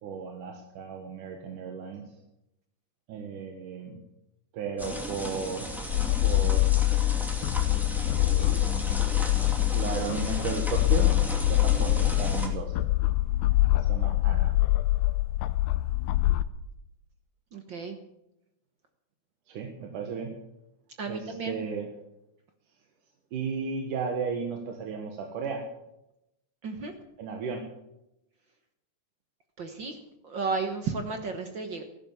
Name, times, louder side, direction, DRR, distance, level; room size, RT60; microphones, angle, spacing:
voice 1, 0.0-2.1 3.1-4.0 4.5-6.7 8.1-8.8 9.7-11.1 11.5-12.8 13.7-14.6 19.5-20.4 21.1-21.9 23.3-25.6 27.2-27.7, right 5 dB, 85° right, 2 dB, 3.0 m, -35 dB
sound 1, 4.8-12.5, equal, ahead, 1.9 m, -36 dB
sound 2, 5.9-16.4, left 17 dB, 75° left, 1.9 m, -25 dB
voice 2, 17.5-18.0 21.0-21.6 26.6-26.9 29.6-30.0 30.2-31.8, right 4 dB, 50° right, 6 dB, 1.5 m, -33 dB
15.5 x 11.0 x 7.2 m, 0.87 s
omnidirectional pair, 3.6 m